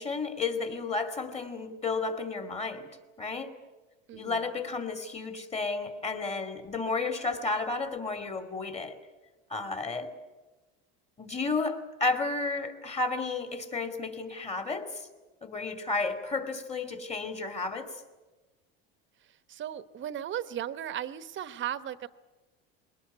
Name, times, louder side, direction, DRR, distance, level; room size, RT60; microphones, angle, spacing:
voice 1, 0.0-2.9 3.2-3.6 4.1-9.0 9.5-10.1 11.2-15.1 15.4-18.0, left 3 dB, 20° left, 8 dB, 2.6 m, -32 dB
voice 2, 4.1-4.4 19.5-22.1, right 10 dB, 40° right, 14 dB, 1.0 m, -36 dB
22.0 x 18.5 x 9.6 m, 1.2 s
supercardioid pair, 120°, 30 cm